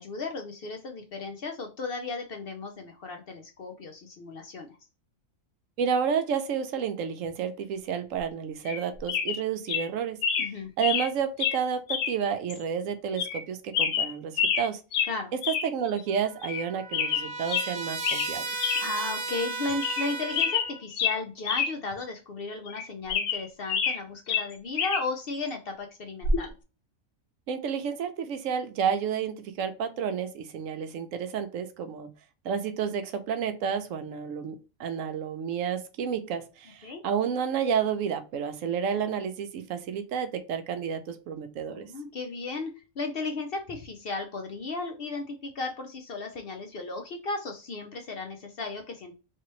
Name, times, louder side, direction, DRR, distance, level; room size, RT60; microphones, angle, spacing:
voice 1, 0.0-4.8 10.4-10.7 15.1-15.3 18.8-26.5 36.8-37.0 41.7-49.2, left 3 dB, 60° left, 4 dB, 0.6 m, -35 dB
voice 2, 5.8-10.2 10.8-14.8 15.5-18.4 27.5-32.1 32.4-41.9, right 7 dB, 75° right, 9 dB, 1.0 m, -30 dB
sound 1, 8.7-8.8 9.1-9.4 9.7-9.9 10.2-10.5 10.8-11.1 11.4-11.6 11.9-12.2 12.5-12.6 13.2-13.4 13.7-14.7 14.9-15.1 15.4-15.7 16.0-16.1 16.4-16.6 16.9-17.7 18.0-18.3 18.6-18.8 19.2-19.3 19.7-20.1 20.3-21.7 22.0-22.1 22.7-24.0 24.3-25.0 26.2-26.5, left 7 dB, 75° left, 1.1 m, -27 dB
Trumpet, 16.1-20.8, right 4 dB, 50° right, 1.0 m, -35 dB
3.3 x 2.9 x 2.9 m, 0.31 s
omnidirectional pair, 1.4 m